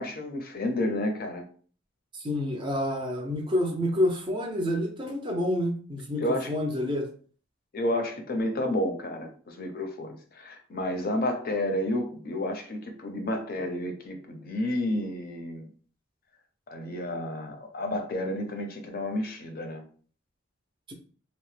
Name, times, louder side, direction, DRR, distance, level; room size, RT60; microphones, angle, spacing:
voice 1, 0.0-1.4 6.2-6.5 7.7-15.7 16.7-19.8, left 1 dB, 45° left, 4 dB, 0.5 m, -31 dB
voice 2, 2.1-7.1 20.9-21.0, left 1 dB, 25° right, 3 dB, 0.4 m, -28 dB
2.8 x 2.0 x 3.2 m, 0.43 s
head